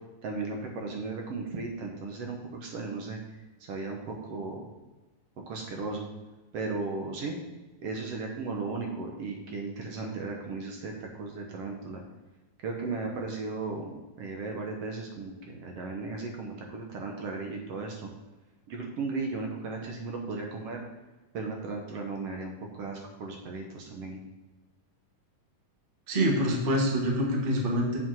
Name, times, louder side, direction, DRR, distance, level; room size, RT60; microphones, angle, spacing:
voice 1, 0.2-4.6 5.5-6.1 6.5-7.4 7.8-12.0 12.6-18.1 18.7-20.8 21.3-24.2, right 3 dB, 65° right, 1 dB, 1.7 m, -36 dB
voice 2, 26.1-28.0, equal, 40° right, -1 dB, 0.7 m, -26 dB
7.6 x 5.0 x 6.1 m, 1.2 s
omnidirectional pair, 3.5 m